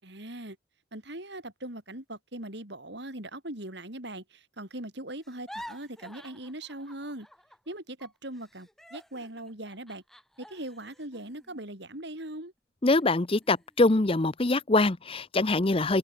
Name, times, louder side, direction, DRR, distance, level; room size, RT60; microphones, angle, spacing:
voice 1, 0.0-0.6 0.9-7.3 7.7-10.0 10.4-12.5, right 1 dB, 55° right, 4.5 m, -40 dB
sound 1, 5.2-7.7 8.0-12.4 12.9-13.0 13.4-13.9, equal, ahead, 4.6 m, -49 dB
voice 2, 12.8-16.0, left 2 dB, 30° left, 0.7 m, -24 dB
head